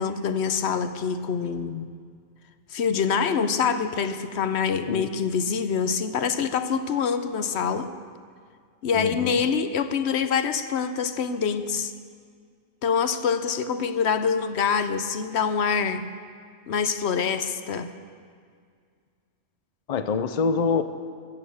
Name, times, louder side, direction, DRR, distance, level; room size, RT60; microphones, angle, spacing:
voice 1, 0.0-1.9 2.7-7.9 8.8-11.9 12.8-16.0 16.7-17.9, left 6 dB, 70° left, 10 dB, 0.9 m, -25 dB
voice 2, 8.9-9.4 19.9-20.8, left 5 dB, 45° left, 10 dB, 0.6 m, -25 dB
14.5 x 8.6 x 7.1 m, 2.1 s
omnidirectional pair, 1.2 m